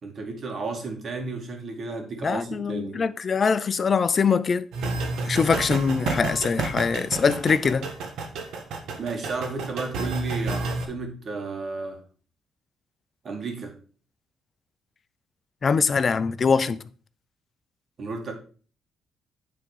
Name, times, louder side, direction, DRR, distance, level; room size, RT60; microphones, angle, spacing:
voice 1, 0.0-3.0 9.0-12.0 13.2-13.7 18.0-18.3, right 3 dB, 50° right, 2.0 m, -33 dB
voice 2, 2.2-4.7 5.3-7.9 15.6-16.8, left 5 dB, 40° left, 0.5 m, -23 dB
sound 1, 4.7-10.8, right 3 dB, 80° right, 1.4 m, -30 dB
9.5 x 3.7 x 4.8 m
cardioid pair, 90°, 0 cm